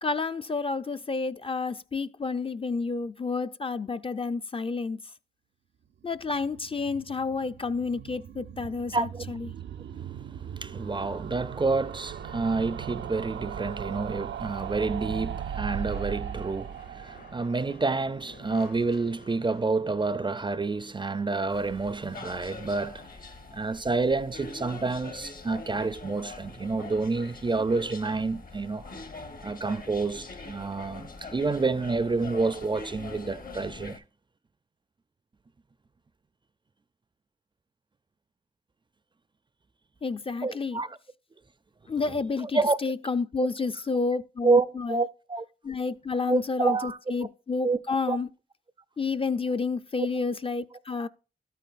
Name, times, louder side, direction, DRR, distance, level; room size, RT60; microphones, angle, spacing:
voice 1, 0.0-5.0 6.0-9.5 40.0-40.8 41.9-45.0 45.6-48.3 49.0-51.1, left 4 dB, 30° left, 0.4 m, -30 dB
sound 1, 6.0-19.1 19.4-19.5 19.7-19.8 20.0-20.1, right 8 dB, 85° right, 0.5 m, -38 dB
voice 2, 8.9-9.2 10.3-23.0 23.5-28.9 29.4-34.0 40.4-41.0 42.4-42.8 44.4-45.5 46.2-47.3 47.6-47.8 48.1-48.2, right 3 dB, 25° right, 0.4 m, -28 dB
sound 2, 15.8-24.5 24.9-25.7 25.9-26.9, left 3 dB, 70° left, 4.8 m, -54 dB
sound 3, 21.5-34.0, left 3 dB, 55° left, 1.2 m, -43 dB
12.5 x 9.1 x 2.5 m
cardioid pair, 75°, 18 cm